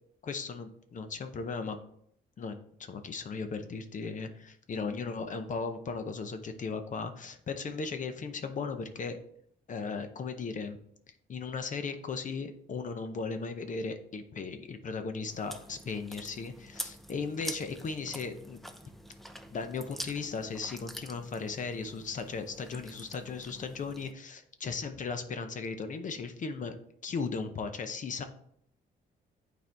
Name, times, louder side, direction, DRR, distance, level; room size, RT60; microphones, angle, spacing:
voice 1, 0.2-1.8 2.4-9.2 9.7-10.8 11.3-18.6 19.5-26.7 27.0-28.2, left 4 dB, 45° left, 8 dB, 0.7 m, -37 dB
Chewing mastication, 15.3-24.1, equal, ahead, 0.6 m, -46 dB
9.2 x 4.4 x 3.4 m, 0.69 s
cardioid pair, 110°, 18 cm